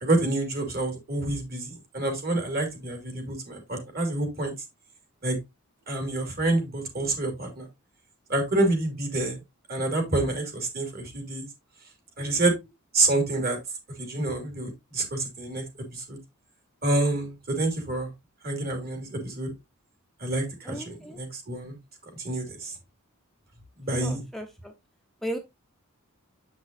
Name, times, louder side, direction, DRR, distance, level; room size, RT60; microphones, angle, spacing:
voice 1, 0.0-4.5 5.2-5.4 5.9-7.7 8.3-9.4 9.7-11.5 12.2-12.6 12.9-13.6 14.0-15.6 15.9-16.2 16.8-18.1 18.4-19.5 20.2-21.8 22.2-22.8 23.8-24.2, right 2 dB, 45° right, 2.6 m, -28 dB
voice 2, 20.7-21.2 24.0-24.7 25.2-25.4, right 1 dB, ahead, 0.7 m, -35 dB
7.5 x 6.1 x 2.6 m
head